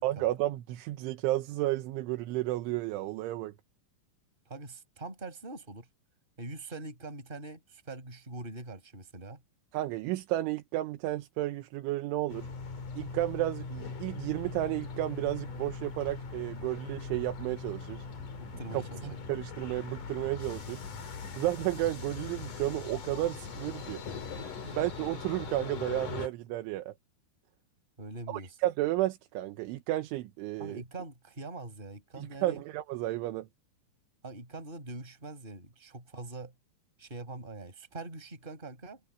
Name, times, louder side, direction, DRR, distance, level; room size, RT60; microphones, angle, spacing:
voice 1, 0.0-3.5 9.7-12.5 13.0-18.0 19.0-20.8 21.4-24.0 24.8-26.9 28.3-30.8 32.2-33.5, right 16 dB, 75° right, 3.3 m, -32 dB
voice 2, 4.4-5.9 6.4-9.4 18.4-19.1 24.4-24.8 28.0-28.6 30.6-32.6 34.2-36.5 37.0-39.0, right 2 dB, 10° right, 4.5 m, -43 dB
sound 1, 12.3-26.3, left 5 dB, 45° left, 3.9 m, -41 dB
omnidirectional pair, 6.0 m